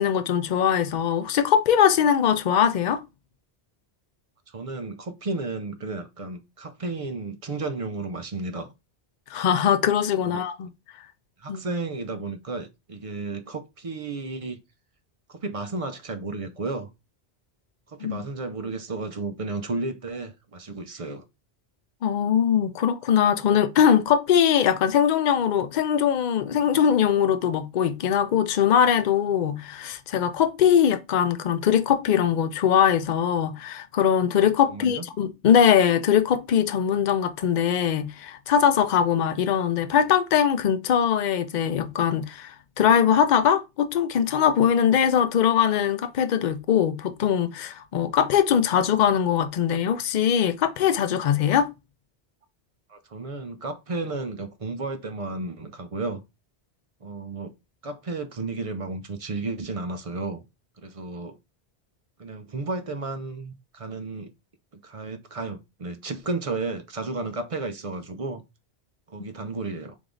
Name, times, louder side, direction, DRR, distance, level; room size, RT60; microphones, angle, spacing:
voice 1, 0.0-3.0 9.3-10.7 11.5-11.6 18.0-18.2 22.0-51.7, left 8 dB, 55° left, 0.6 m, -21 dB
voice 2, 4.5-8.7 10.2-10.4 11.4-14.6 15.3-16.9 17.9-21.2 34.7-35.0 52.9-56.2 57.0-57.5 57.8-60.4 60.8-61.4 62.2-64.3 64.8-68.4 69.1-70.0, right 3 dB, 40° right, 0.5 m, -33 dB
3.6 x 3.4 x 3.8 m
omnidirectional pair, 1.1 m